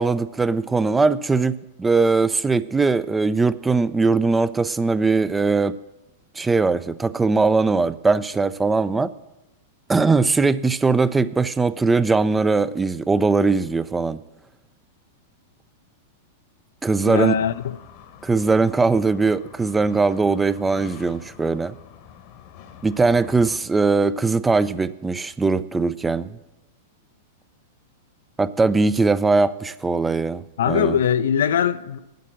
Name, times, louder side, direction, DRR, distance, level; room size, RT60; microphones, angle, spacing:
voice 1, 0.0-5.7 6.4-9.1 9.9-14.2 16.8-17.4 18.2-21.7 22.8-26.4 28.4-31.0, right 3 dB, 10° right, 0.4 m, -20 dB
sound 1, 17.0-23.6, left 10 dB, 50° left, 1.1 m, -45 dB
voice 2, 17.1-17.8 30.6-32.0, left 8 dB, 70° left, 0.4 m, -21 dB
9.2 x 7.4 x 8.6 m
figure-of-eight pair, 100°, 0 cm